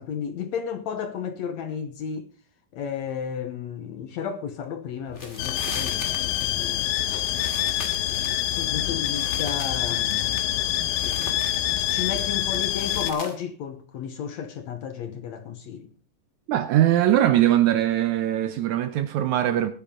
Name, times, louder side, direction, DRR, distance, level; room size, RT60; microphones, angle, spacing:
voice 1, 0.0-2.3 2.7-6.9 8.6-10.4 11.0-11.4 11.9-15.9, left 7 dB, 65° left, 1.9 m, -33 dB
sound 1, 5.1-13.3, left 2 dB, 25° left, 2.0 m, -41 dB
sound 2, 5.4-13.1, left 13 dB, 90° left, 2.5 m, -26 dB
voice 2, 16.5-19.7, right 12 dB, 75° right, 1.8 m, -21 dB
18.0 x 9.6 x 3.7 m
omnidirectional pair, 3.9 m